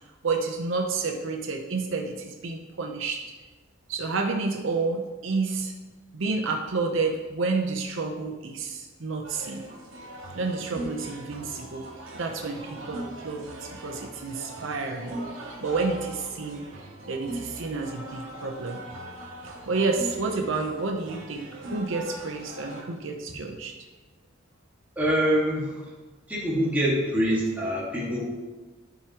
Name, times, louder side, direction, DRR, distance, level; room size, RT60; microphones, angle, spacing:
voice 1, 0.2-3.2 3.9-5.7 6.1-9.6 10.3-11.9 12.1-15.1 15.6-16.7 17.1-18.8 19.7-23.7, right 3 dB, 70° right, 2 dB, 0.8 m, -30 dB
sound 1, 9.2-22.8, right 1 dB, 90° right, 1.8 m, -40 dB
voice 2, 25.0-25.9 26.3-28.3, equal, 10° right, -6 dB, 1.8 m, -25 dB
12.0 x 4.9 x 3.0 m, 1.2 s
head